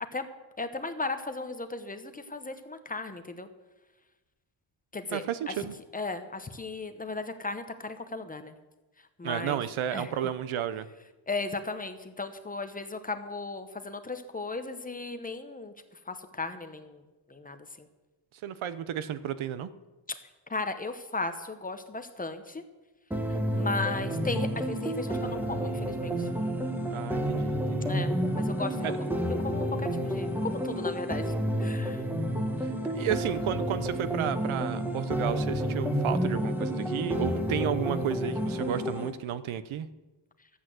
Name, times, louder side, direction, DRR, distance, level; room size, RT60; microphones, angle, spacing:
voice 1, 0.6-3.5 4.9-5.5 5.9-8.5 9.2-9.6 9.9-10.1 11.3-15.7 16.1-17.0 17.3-17.9 20.1-20.2 20.5-22.6 23.3-26.3 27.9-28.9 29.4-32.1, left 3 dB, 20° left, 8 dB, 0.9 m, -36 dB
voice 2, 5.1-5.7 9.2-10.9 18.4-19.7 26.9-27.9 28.8-29.0 32.6-39.9, right 10 dB, 80° right, 14 dB, 0.9 m, -32 dB
sound 1, 23.1-39.1, equal, 5° right, 1.1 m, -30 dB
13.0 x 8.5 x 7.7 m, 1.2 s
wide cardioid pair, 160°, 47 cm